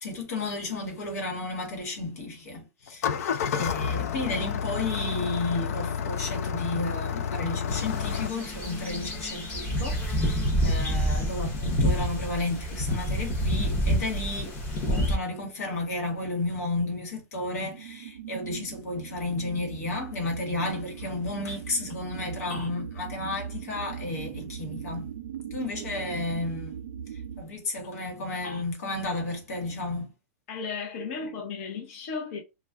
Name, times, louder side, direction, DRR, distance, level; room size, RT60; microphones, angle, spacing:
voice 1, 0.0-3.1 3.5-14.6 14.9-25.1 25.5-26.7 27.4-30.1, left 2 dB, 90° left, 1.3 m, -32 dB
Engine starting, 2.9-8.3, left 7 dB, 75° left, 0.4 m, -30 dB
sound 1, 7.7-15.2, equal, 20° left, 0.8 m, -28 dB
sound 2, 17.6-27.4, right 8 dB, 60° right, 0.5 m, -40 dB
voice 2, 30.5-32.4, left 5 dB, 50° left, 0.7 m, -35 dB
2.4 x 2.2 x 3.3 m
supercardioid pair, 155°, 8 cm